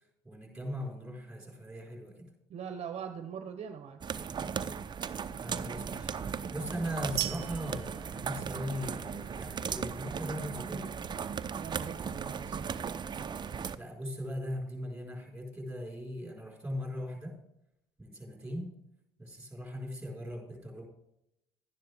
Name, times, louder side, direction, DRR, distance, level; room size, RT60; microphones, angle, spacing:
voice 1, 0.2-2.3 5.4-6.1 6.5-10.9 13.8-17.3 18.0-18.7 19.2-20.9, equal, 5° right, 0 dB, 4.7 m, -39 dB
voice 2, 2.5-4.0 11.5-12.8, right 7 dB, 50° right, 8 dB, 0.9 m, -42 dB
sound 1, 4.0-13.8, right 6 dB, 30° right, 0.6 m, -37 dB
sound 2, 7.2-9.1, right 20 dB, 80° right, 0.6 m, -39 dB
12.0 x 10.5 x 3.5 m, 0.83 s
supercardioid pair, 75°, 14 cm